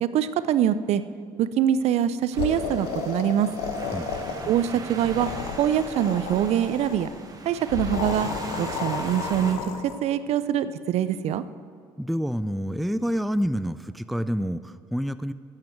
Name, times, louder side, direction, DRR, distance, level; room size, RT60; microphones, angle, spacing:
voice 1, 0.0-1.0 1.4-3.5 4.5-5.3 5.6-7.1 7.5-8.3 8.6-9.6 10.0-11.4, right 10 dB, 60° right, 14 dB, 0.5 m, -24 dB
sound 1, 2.3-9.5, right 3 dB, 30° right, 1.4 m, -40 dB
sound 2, 2.4-4.7 5.0-7.1 7.7-10.0, left 6 dB, 85° left, 0.9 m, -32 dB
voice 2, 3.9-4.2 12.0-15.3, equal, ahead, 13 dB, 0.3 m, -28 dB
14.0 x 7.4 x 4.5 m, 2.2 s
supercardioid pair, 75°, 12 cm